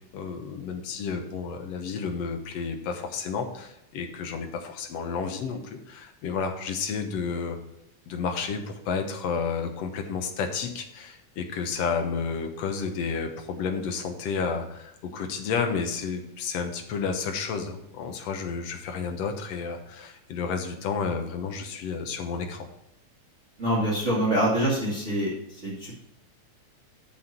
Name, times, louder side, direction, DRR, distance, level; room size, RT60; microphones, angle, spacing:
voice 1, 0.1-7.6 8.1-22.7, left 5 dB, 65° left, 5 dB, 2.1 m, -31 dB
voice 2, 23.6-26.0, right 1 dB, 25° right, -6 dB, 2.4 m, -25 dB
8.6 x 5.7 x 5.9 m, 0.81 s
omnidirectional pair, 3.5 m